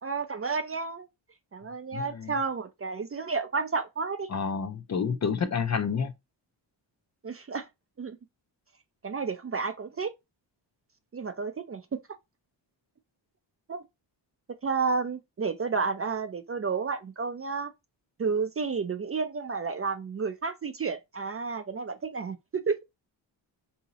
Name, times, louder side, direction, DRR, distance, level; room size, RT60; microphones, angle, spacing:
voice 1, 0.0-1.1 1.5-4.3 7.2-7.7 8.0-8.2 9.0-10.1 11.1-12.0 13.7-13.8 14.6-17.7 18.2-22.8, right 5 dB, 35° right, 0.4 m, -31 dB
voice 2, 1.9-2.3 4.3-6.1, left 6 dB, 40° left, 0.4 m, -29 dB
3.9 x 2.8 x 2.8 m
wide cardioid pair, 90°, 46 cm